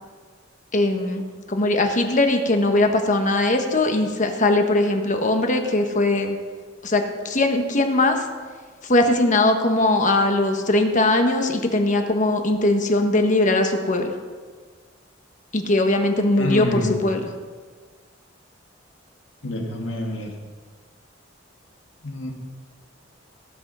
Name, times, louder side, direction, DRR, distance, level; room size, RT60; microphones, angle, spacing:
voice 1, 0.7-1.2 1.5-6.4 6.8-8.2 8.9-14.1 15.5-17.2, left 2 dB, 40° left, 5 dB, 1.2 m, -20 dB
voice 2, 16.4-17.1 19.4-20.3 22.0-22.3, left 1 dB, 80° left, 1 dB, 1.9 m, -27 dB
18.0 x 6.3 x 5.6 m, 1.5 s
head